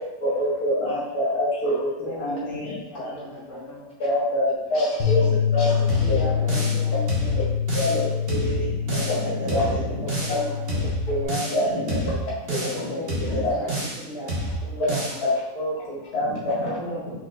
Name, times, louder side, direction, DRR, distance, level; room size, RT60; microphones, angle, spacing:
voice 1, 0.2-2.4 3.0-3.1 4.0-6.2 7.8-8.1 9.1-9.2 9.5-9.6 10.3-10.4 11.1-11.7 12.5-12.7 13.4-13.7 15.2-16.8, left 1 dB, 65° left, -6 dB, 1.6 m, -25 dB
voice 2, 2.0-3.9 6.0-7.5 9.5-10.9 12.9-15.3 16.8-17.1, equal, 5° right, -8 dB, 0.8 m, -37 dB
Bass guitar, 5.0-11.2, left 8 dB, 90° left, 1.4 m, -25 dB
Drums Kick Snare, 5.9-6.8 7.1-8.0 8.3-9.2 9.5-10.4 10.7-11.6 11.9-12.8 13.1-14.0 14.3-15.2, right 2 dB, 40° right, 1.1 m, -29 dB
voice 3, 7.8-10.2 10.7-10.8 11.4-12.1 12.5-13.4 15.9-16.7, left 1 dB, 40° left, -6 dB, 1.5 m, -32 dB
4.9 x 4.1 x 2.5 m, 0.97 s
omnidirectional pair, 1.7 m